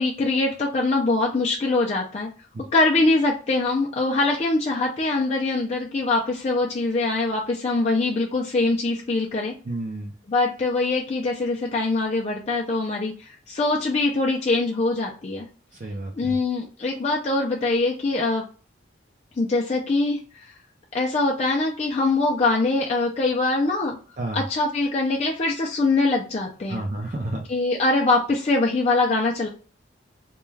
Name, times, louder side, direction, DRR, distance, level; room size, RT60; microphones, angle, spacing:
voice 1, 0.0-2.3 2.7-9.5 10.3-15.4 16.1-18.4 19.4-20.5 20.9-24.0 24.3-26.8 27.5-29.5, left 3 dB, 35° left, -1 dB, 0.3 m, -23 dB
voice 2, 9.7-10.1 15.8-16.4 24.2-24.4 26.7-27.4, right 1 dB, 40° right, -1 dB, 0.4 m, -30 dB
2.2 x 2.2 x 3.1 m, 0.38 s
head